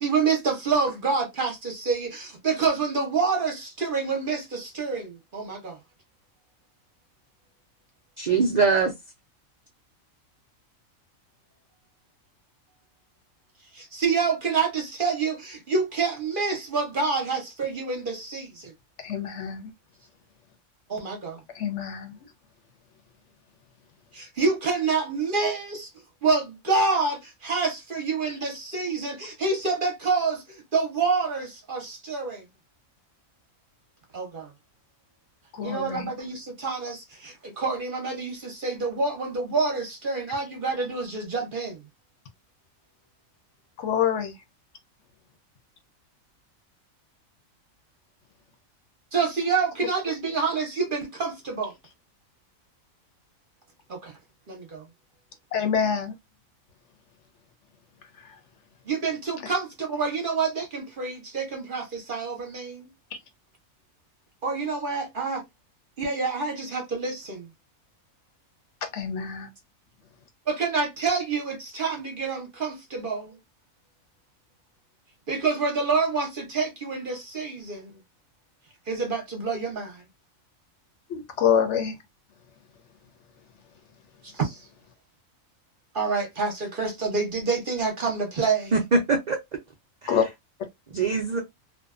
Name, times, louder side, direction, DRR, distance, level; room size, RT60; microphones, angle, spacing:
voice 1, 0.0-5.8 13.7-18.7 20.9-21.4 24.1-25.9 26.2-32.4 34.1-34.5 35.6-41.8 49.1-51.7 53.9-54.2 54.5-54.9 58.9-62.9 64.4-65.4 66.0-67.5 70.5-73.4 75.3-77.9 78.9-80.0 84.2-84.6 85.9-88.7, right 4 dB, 50° right, 0.7 m, -27 dB
voice 2, 8.2-8.9 88.7-89.4 90.0-90.2 90.9-91.4, right 4 dB, 70° right, 0.4 m, -22 dB
voice 3, 19.0-19.7 21.5-22.2 35.5-36.1 43.8-44.3 55.5-56.1 58.2-58.4 59.4-59.5 68.8-69.5 81.1-81.9 90.1-90.2, left 8 dB, 65° left, 0.9 m, -26 dB
2.5 x 2.2 x 2.3 m
omnidirectional pair, 1.4 m